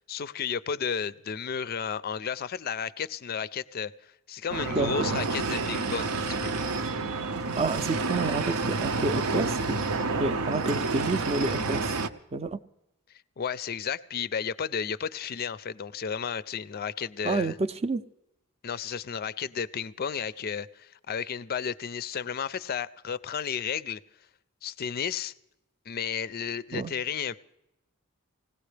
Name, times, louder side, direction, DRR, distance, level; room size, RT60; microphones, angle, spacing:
voice 1, 0.0-6.5 13.4-17.6 18.6-24.0 24.6-25.3 25.9-27.4, left 7 dB, 45° left, 0.4 m, -33 dB
sound 1, 4.5-12.1, right 3 dB, 80° right, 0.7 m, -29 dB
voice 2, 4.7-5.1 7.6-9.8 10.2-11.9 12.3-12.6 17.2-18.0 26.7-26.9, right 3 dB, 30° right, 0.5 m, -29 dB
20.0 x 17.0 x 3.3 m
head